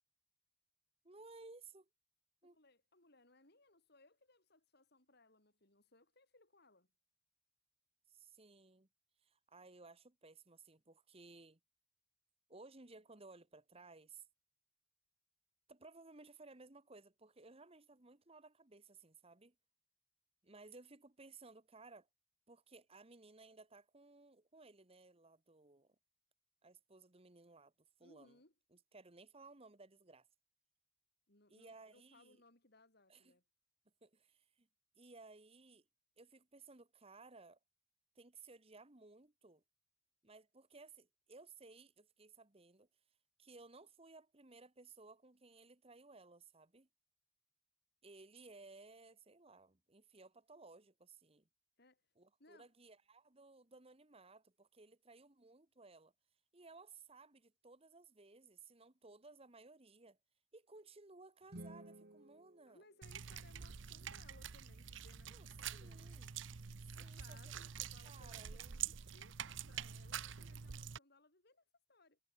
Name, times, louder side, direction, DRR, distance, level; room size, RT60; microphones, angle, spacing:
voice 1, 1.0-1.9 2.4-2.6 8.1-8.9 9.2-11.6 12.5-14.2 15.7-19.5 20.4-22.1 22.5-25.9 26.6-27.7 28.0-28.3 28.7-30.3 31.5-32.4 33.1-33.3 34.0-34.7 35.0-35.8 36.2-37.6 38.1-39.6 40.2-42.9 43.4-46.9 48.0-51.4 52.2-56.1 56.5-60.2 60.5-62.8 65.3-65.5 65.7-66.3 67.0-67.4 68.0-68.8, right 3 dB, 30° right, 1.5 m, -59 dB
voice 2, 2.4-6.9 28.0-28.5 31.3-33.4 51.8-52.1 52.4-52.7 62.7-66.3 66.9-72.2, left 2 dB, 55° left, 4.5 m, -67 dB
sound 1, 61.4-63.7, right 1 dB, 55° right, 2.0 m, -56 dB
sound 2, 63.0-71.0, right 8 dB, 70° right, 0.8 m, -47 dB
head